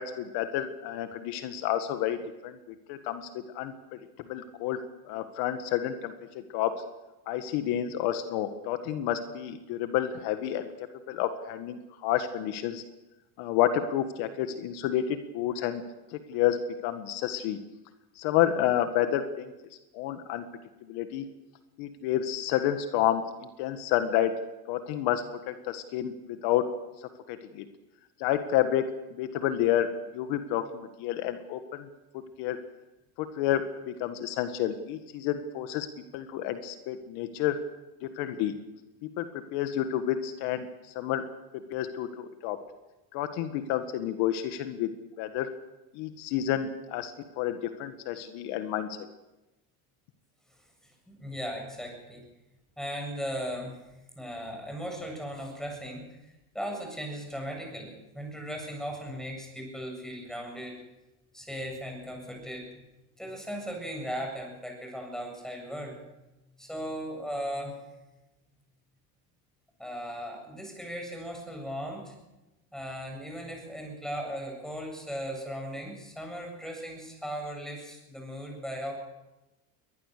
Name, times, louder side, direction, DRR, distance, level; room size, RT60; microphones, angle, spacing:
voice 1, 0.0-2.6 2.9-3.7 4.3-4.8 5.1-6.1 6.5-6.7 7.3-10.7 11.1-12.8 13.4-15.8 16.3-16.6 16.8-17.6 18.2-19.5 19.9-20.4 20.9-21.3 21.8-23.2 23.6-24.3 24.7-26.7 27.3-27.7 28.2-28.8 29.1-29.9 30.1-31.9 32.4-32.6 33.2-35.9 36.1-37.6 38.0-38.5 39.0-40.7 41.0-41.2 41.7-42.6 43.1-44.9 45.2-45.5 45.9-49.0, left 11 dB, 70° left, 9 dB, 1.8 m, -29 dB
voice 2, 50.8-52.2 52.8-53.8 54.2-60.8 61.3-62.7 63.2-65.9 66.6-67.8 69.8-72.1 72.7-78.9, equal, ahead, 2 dB, 7.7 m, -37 dB
23.0 x 19.5 x 6.8 m, 1.0 s
supercardioid pair, 125°, 41 cm